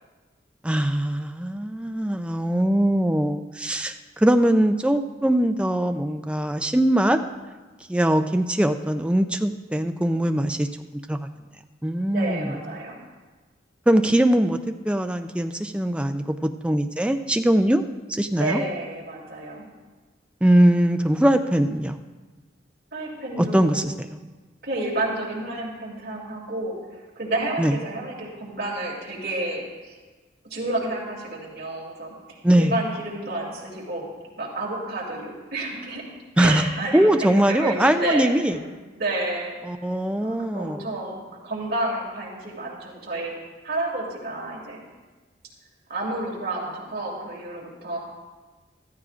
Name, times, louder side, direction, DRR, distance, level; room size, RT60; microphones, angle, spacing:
voice 1, 0.6-7.2 7.9-10.7 11.1-11.2 11.8-12.6 13.9-17.8 18.1-18.6 20.4-22.0 23.4-24.2 27.6-27.8 32.4-32.7 36.4-36.6 36.9-38.6 39.6-40.8, right 1 dB, 5° right, 7 dB, 0.4 m, -21 dB
voice 2, 12.1-13.0 18.4-19.6 22.9-23.8 24.6-26.7 27.2-29.9 30.5-34.1 34.4-36.0 36.4-37.1 37.5-38.6 39.0-39.6 40.2-43.3 43.6-44.8 45.9-48.0, right 2 dB, 55° right, -3 dB, 2.8 m, -30 dB
14.5 x 14.0 x 2.5 m, 1.3 s
head